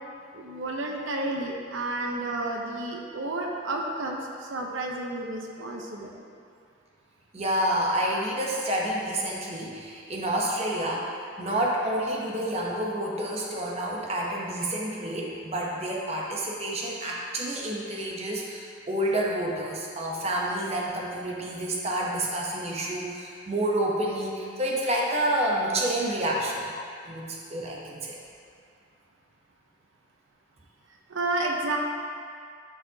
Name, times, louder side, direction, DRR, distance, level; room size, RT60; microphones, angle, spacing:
voice 1, 0.3-6.2 31.1-31.8, right 2 dB, 75° right, 0 dB, 0.8 m, -31 dB
voice 2, 7.3-11.1 11.4-26.7 27.1-28.2, right 1 dB, 30° right, -2 dB, 0.8 m, -29 dB
12.0 x 4.9 x 2.8 m, 2.3 s
head